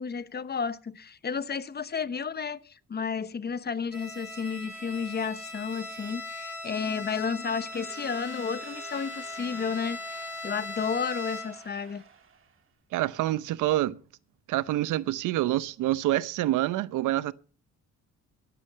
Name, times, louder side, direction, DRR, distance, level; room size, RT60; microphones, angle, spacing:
voice 1, 0.0-12.0, left 6 dB, 35° left, 0.9 m, -32 dB
Bowed string instrument, 3.9-11.7, left 2 dB, 5° right, 6.8 m, -39 dB
Crowd / Alarm, 7.2-12.7, right 6 dB, 45° right, 1.9 m, -51 dB
voice 2, 12.9-14.0 14.5-17.3, right 15 dB, 85° right, 0.7 m, -27 dB
12.0 x 11.5 x 6.7 m
cardioid pair, 90°, 30 cm